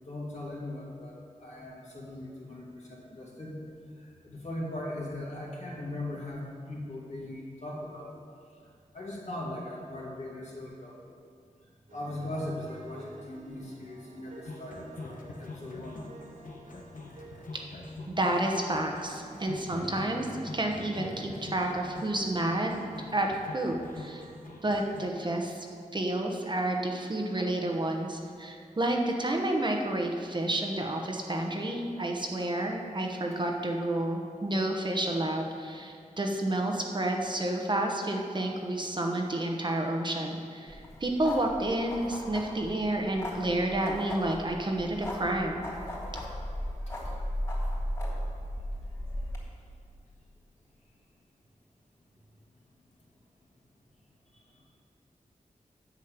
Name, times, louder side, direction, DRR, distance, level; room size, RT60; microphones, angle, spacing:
voice 1, 0.1-3.5 4.0-8.2 8.9-11.0 11.9-16.0 46.9-47.0 54.3-54.6, left 1 dB, 55° left, -4 dB, 2.7 m, -39 dB
sound 1, 11.9-24.8, right 2 dB, 70° right, 1.7 m, -49 dB
sound 2, 14.5-25.1, left 2 dB, 75° left, 1.1 m, -45 dB
voice 2, 18.1-22.8 23.1-24.2 24.6-25.7 25.9-45.6, right 1 dB, 35° right, 1 dB, 1.1 m, -30 dB
sound 3, 40.7-49.4, equal, 25° left, 3.2 m, -36 dB
8.6 x 6.4 x 8.2 m, 2.2 s
wide cardioid pair, 95°, 14 cm